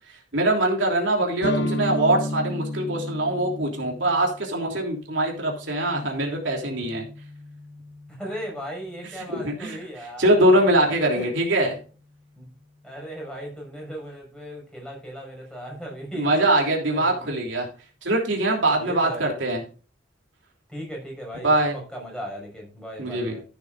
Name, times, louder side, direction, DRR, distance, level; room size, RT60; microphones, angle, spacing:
voice 1, 0.3-7.0 9.3-9.8 10.2-11.8 16.1-17.7 18.0-19.6 21.4-21.8 23.0-23.4, right 1 dB, 75° right, 0 dB, 3.1 m, -22 dB
sound 1, 1.4-9.2, left 1 dB, 60° left, 1.8 m, -34 dB
voice 2, 8.1-11.3 11.7-11.8 12.4-12.5 12.8-17.4 18.8-19.3 20.7-23.4, equal, 5° left, -2 dB, 5.7 m, -37 dB
14.5 x 8.9 x 2.6 m, 0.37 s
head